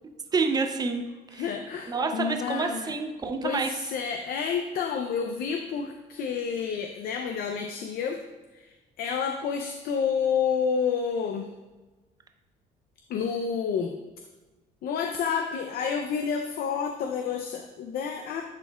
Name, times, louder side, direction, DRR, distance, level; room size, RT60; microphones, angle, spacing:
voice 1, 0.3-1.1 1.3-1.5 1.9-3.8, right 4 dB, 25° right, 5 dB, 0.6 m, -28 dB
voice 2, 1.3-2.9 3.4-8.2 8.5-8.7 9.0-11.5 13.1-13.9 14.8-18.4, left 6 dB, 65° left, 4 dB, 0.5 m, -29 dB
10.5 x 4.2 x 2.3 m, 1.2 s
cardioid pair, 110°, 17 cm